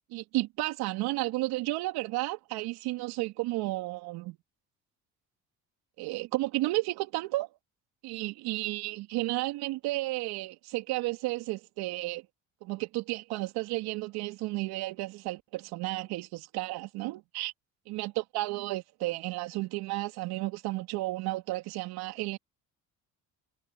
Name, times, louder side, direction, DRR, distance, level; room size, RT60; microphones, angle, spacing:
voice 1, 0.1-4.4 6.0-7.5 8.0-12.2 12.6-17.5 17.9-22.4, right 19 dB, 80° right, 3.3 m, -32 dB
supercardioid pair, 70°, 38 cm